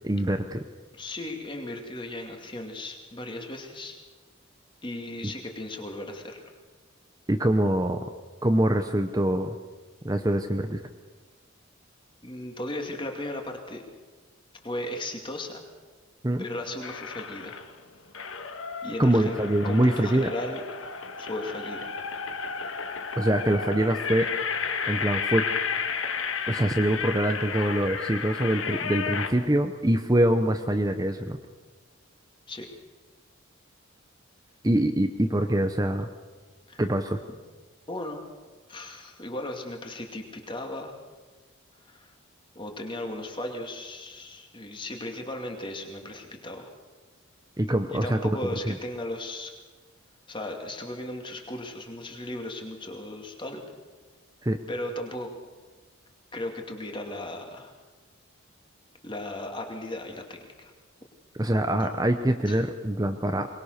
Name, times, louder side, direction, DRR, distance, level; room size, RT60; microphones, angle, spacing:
voice 1, 0.0-0.6 7.3-8.0 8.4-9.6 10.0-10.8 16.2-16.5 19.0-20.3 23.2-24.3 24.9-25.4 26.5-31.4 34.6-36.1 36.8-37.2 47.6-48.4 48.7-48.8 54.4-54.6 61.4-63.5, right 1 dB, 20° right, 6 dB, 0.8 m, -24 dB
voice 2, 0.9-4.0 4.8-6.5 12.2-13.8 14.6-15.6 16.4-17.7 18.8-19.3 19.6-20.6 21.2-21.9 32.5-32.7 36.7-36.9 37.9-38.2 38.7-40.9 41.8-42.1 42.5-46.7 47.9-49.5 50.3-53.7 54.7-55.3 56.3-57.7 59.0-60.7 61.8-61.9 62.5-62.6, left 1 dB, 25° left, 3 dB, 2.4 m, -36 dB
sound 1, 16.8-17.7 18.1-29.3, left 6 dB, 75° left, 1.7 m, -32 dB
22.5 x 20.0 x 6.6 m, 1.4 s
head